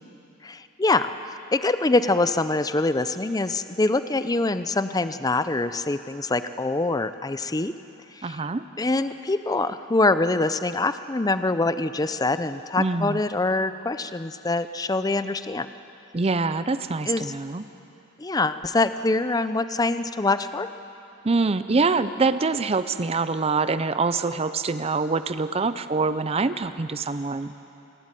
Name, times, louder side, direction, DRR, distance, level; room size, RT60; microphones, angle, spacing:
voice 1, 0.4-1.1 1.5-7.7 8.2-8.4 8.8-15.7 17.1-17.3 18.2-20.7, left 2 dB, 20° left, 12 dB, 0.5 m, -24 dB
voice 2, 8.2-8.6 12.8-13.2 16.1-17.6 21.2-27.5, right 4 dB, 30° right, 12 dB, 0.5 m, -25 dB
27.0 x 12.0 x 9.8 m, 2.9 s
head